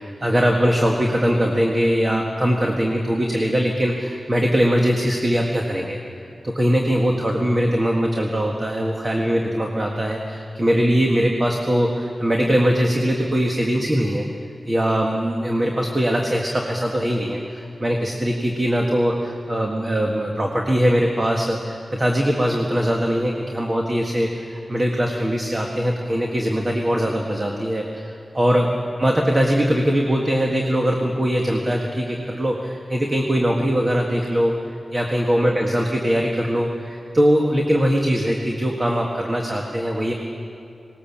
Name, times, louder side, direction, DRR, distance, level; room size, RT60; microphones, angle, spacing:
voice 1, 0.0-6.0 6.4-14.2 14.6-28.7 29.0-40.1, equal, 25° right, 0 dB, 1.7 m, -21 dB
20.0 x 19.5 x 7.4 m, 2.7 s
wide cardioid pair, 115°, 0 cm